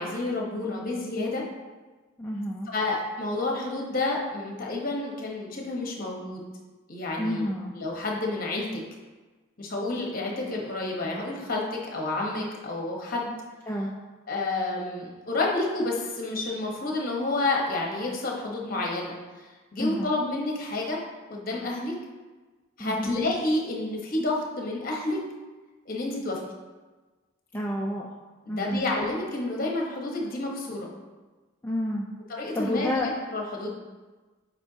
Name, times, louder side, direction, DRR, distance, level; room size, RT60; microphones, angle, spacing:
voice 1, 0.0-1.4 2.7-6.4 6.9-7.5 7.7-8.8 9.6-13.3 14.3-19.2 19.7-21.0 21.3-21.9 22.8-25.2 25.9-26.5 28.5-30.9 32.3-33.7, left 2 dB, 40° left, -1 dB, 1.1 m, -29 dB
voice 2, 2.2-2.7 7.2-7.7 13.7-13.9 19.8-20.1 22.8-23.1 27.5-28.1 28.5-28.8 31.6-32.1 32.5-33.1, left 1 dB, 10° left, -4 dB, 0.4 m, -29 dB
8.3 x 4.5 x 2.8 m, 1.3 s
head